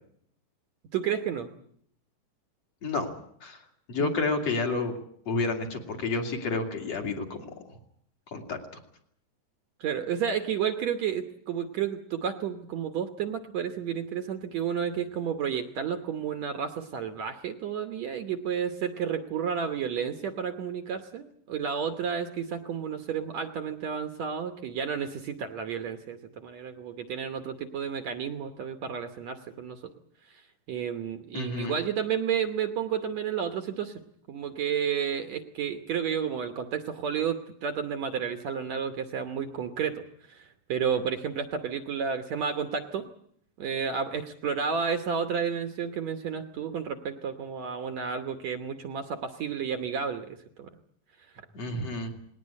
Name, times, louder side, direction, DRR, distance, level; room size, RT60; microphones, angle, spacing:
voice 1, 0.9-1.5 4.0-4.1 9.8-29.8 30.3-30.4 30.7-34.0 34.3-40.0 40.3-43.0 43.6-50.7, right 7 dB, 65° right, 8 dB, 2.0 m, -31 dB
voice 2, 2.8-3.1 3.4-3.6 3.9-5.0 5.3-7.5 8.3-8.6 31.3-31.8 51.5-52.1, left 3 dB, 50° left, 2 dB, 3.2 m, -30 dB
20.0 x 18.5 x 9.7 m, 0.67 s
omnidirectional pair, 4.0 m